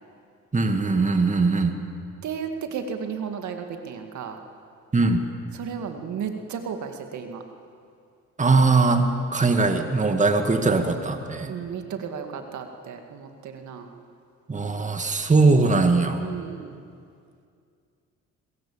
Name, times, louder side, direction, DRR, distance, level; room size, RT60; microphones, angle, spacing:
voice 1, 0.5-1.8 4.9-5.3 8.4-11.5 14.5-16.2, right 3 dB, 25° right, 6 dB, 2.0 m, -21 dB
voice 2, 2.2-4.4 5.5-7.4 11.5-13.9 16.2-16.8, right 7 dB, 70° right, 5 dB, 2.2 m, -34 dB
21.5 x 21.5 x 8.7 m, 2.3 s
cardioid pair, 90°, 30 cm